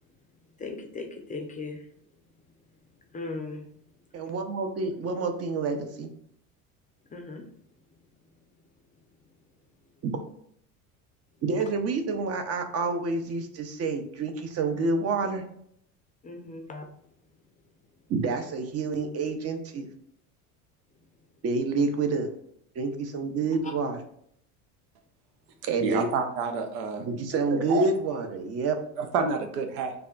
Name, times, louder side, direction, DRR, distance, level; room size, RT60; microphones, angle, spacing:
voice 1, 0.6-1.9 3.1-3.6 7.1-7.4 7.9-8.0 16.2-16.9 23.6-23.7, left 3 dB, 20° left, 3 dB, 0.5 m, -38 dB
voice 2, 4.1-6.1 10.0-10.2 11.4-15.4 18.1-19.9 21.4-22.3 22.8-24.0 25.6-26.1 27.1-28.8, right 3 dB, 35° right, 7 dB, 0.6 m, -28 dB
voice 3, 25.8-27.1 27.5-27.9 29.0-29.9, right 5 dB, 80° right, 5 dB, 0.7 m, -29 dB
3.4 x 2.2 x 3.8 m, 0.69 s
supercardioid pair, 95°, 44 cm